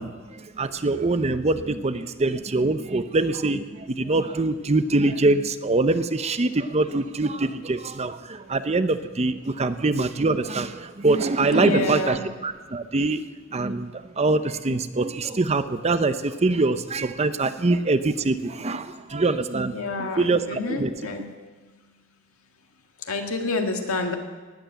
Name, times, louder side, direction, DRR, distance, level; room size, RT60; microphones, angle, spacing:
voice 1, 0.0-13.2 13.5-20.9, right 2 dB, 30° right, 11 dB, 0.6 m, -24 dB
voice 2, 11.5-12.3 19.7-21.2 23.1-24.2, left 2 dB, 90° left, 3 dB, 1.9 m, -28 dB
19.0 x 8.1 x 8.0 m, 1.4 s
head